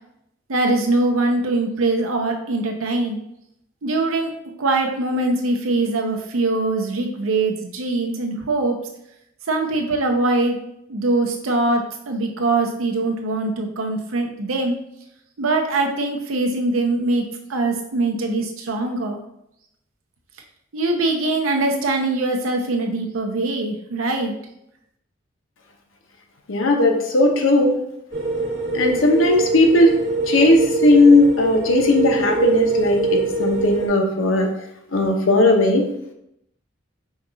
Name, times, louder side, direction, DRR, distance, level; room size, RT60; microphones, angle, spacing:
voice 1, 0.5-3.2 3.8-4.3 4.6-8.8 9.5-10.6 10.9-14.8 15.4-17.2 17.5-19.2 20.7-24.3, right 2 dB, 90° right, 3 dB, 0.7 m, -22 dB
voice 2, 26.5-27.8 28.7-30.0 30.3-34.5 34.9-35.9, left 2 dB, 75° left, 3 dB, 0.8 m, -17 dB
sound 1, 28.1-33.9, right 3 dB, 70° right, 1.2 m, -23 dB
5.1 x 2.4 x 3.8 m, 0.79 s
head